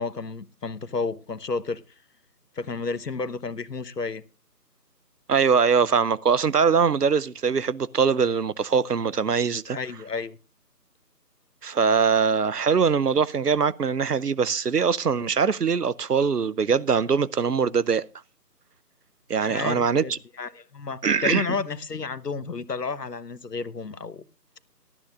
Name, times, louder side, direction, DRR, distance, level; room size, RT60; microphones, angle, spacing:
voice 1, 0.0-1.8 2.5-4.2 9.7-10.4 19.4-24.2, left 4 dB, 75° left, 1.2 m, -31 dB
voice 2, 5.3-9.8 11.6-18.1 19.3-20.2 21.0-21.5, right 6 dB, 70° right, 0.8 m, -22 dB
18.5 x 13.0 x 2.4 m
figure-of-eight pair, 175°, 49 cm